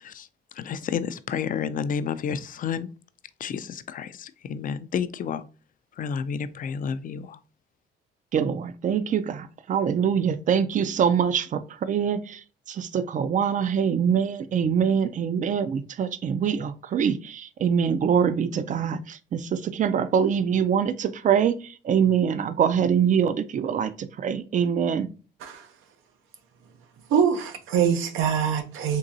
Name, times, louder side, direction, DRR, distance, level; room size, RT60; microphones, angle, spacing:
voice 1, 0.6-2.9 3.4-5.4 6.0-7.4, left 7 dB, 45° left, 0.4 m, -30 dB
voice 2, 8.3-12.2 12.8-21.6 21.9-25.1, right 7 dB, 40° right, 0.4 m, -24 dB
voice 3, 27.1-29.0, right 7 dB, 85° right, 0.7 m, -24 dB
3.8 x 2.9 x 2.6 m
cardioid pair, 90°, 20 cm